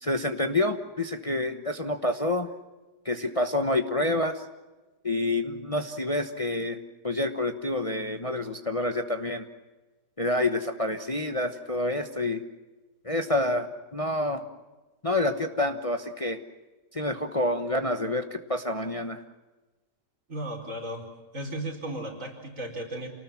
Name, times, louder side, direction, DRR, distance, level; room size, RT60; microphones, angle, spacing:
voice 1, 0.0-2.5 3.0-4.4 5.0-9.4 10.2-12.4 13.0-13.7 13.9-14.4 15.0-16.4 16.9-19.2, left 1 dB, 25° left, 7 dB, 1.0 m, -28 dB
voice 2, 20.3-21.0 21.3-23.1, right 1 dB, 50° right, 1 dB, 4.8 m, -35 dB
28.0 x 19.0 x 7.3 m, 1.2 s
omnidirectional pair, 1.8 m